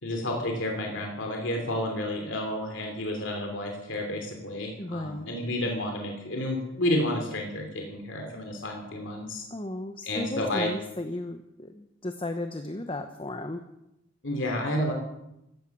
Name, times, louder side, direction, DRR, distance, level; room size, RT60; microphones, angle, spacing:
voice 1, 0.0-9.5 10.0-10.7 14.2-14.9, left 1 dB, 65° left, 2 dB, 2.9 m, -30 dB
voice 2, 4.8-5.3 9.5-13.6, left 1 dB, 25° left, 7 dB, 0.9 m, -35 dB
16.0 x 14.0 x 6.1 m, 0.86 s
head